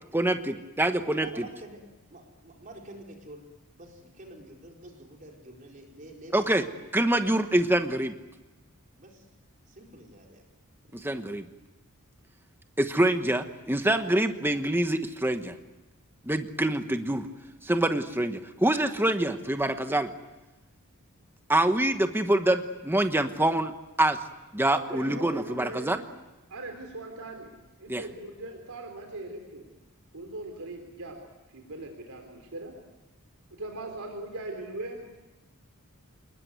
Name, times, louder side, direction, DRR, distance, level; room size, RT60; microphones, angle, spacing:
voice 1, 0.1-1.3 6.3-6.6 6.9-8.1 10.9-11.4 12.8-15.6 16.3-17.3 17.6-20.1 21.5-23.7 24.0-24.2 24.5-26.0 27.9-28.0, right 1 dB, 10° right, 7 dB, 1.1 m, -25 dB
voice 2, 1.2-1.8 2.1-3.5 3.7-7.1 9.0-9.3 9.7-10.4 10.8-11.1, right 1 dB, 35° right, 0 dB, 4.3 m, -48 dB
voice 3, 24.7-26.2 26.5-29.6 30.1-31.2 31.5-32.7 33.5-35.0, right 2 dB, 75° right, 4 dB, 3.6 m, -40 dB
28.5 x 20.5 x 9.4 m, 1.1 s
head